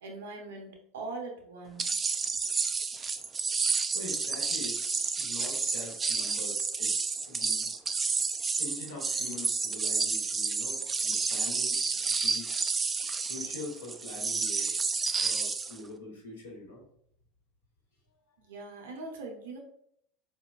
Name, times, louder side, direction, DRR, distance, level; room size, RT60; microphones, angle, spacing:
voice 1, 0.0-2.0 18.4-19.6, right 3 dB, 75° right, 2 dB, 0.9 m, -41 dB
sound 1, 1.8-15.8, right 4 dB, 25° right, 0.3 m, -30 dB
voice 2, 3.9-7.7 8.6-11.8 12.1-12.7 13.2-14.7 15.2-16.8, left 2 dB, 80° left, -2 dB, 1.2 m, -44 dB
4.3 x 2.7 x 2.4 m, 0.68 s
figure-of-eight pair, 75°, 0 cm